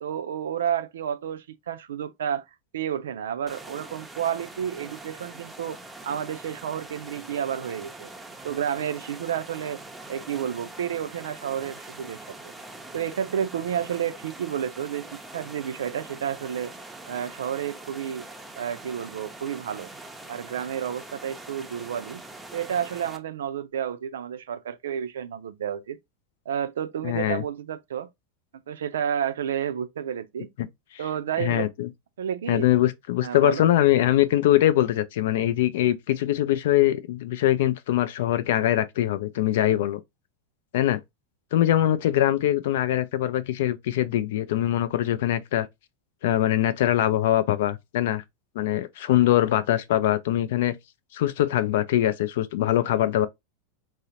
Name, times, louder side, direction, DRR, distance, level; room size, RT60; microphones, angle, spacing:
voice 1, 0.0-2.4 2.7-5.8 6.0-8.1 8.4-9.8 10.1-12.2 12.4-12.5 12.9-16.7 17.1-18.2 18.6-19.9 20.3-22.2 22.5-26.0 26.5-28.1 28.7-30.5 31.0-31.7 32.2-32.7 33.2-33.7, right 9 dB, 70° right, 0.4 m, -30 dB
sound 1, 3.5-23.2, right 2 dB, 10° right, 0.5 m, -43 dB
voice 2, 27.0-27.4 30.6-30.7 31.4-31.9 32.5-40.0 40.7-41.0 41.5-45.7 46.2-48.2 48.6-50.8 51.1-53.3, left 13 dB, 65° left, 0.3 m, -22 dB
3.7 x 2.0 x 2.7 m
figure-of-eight pair, 90°, 0 cm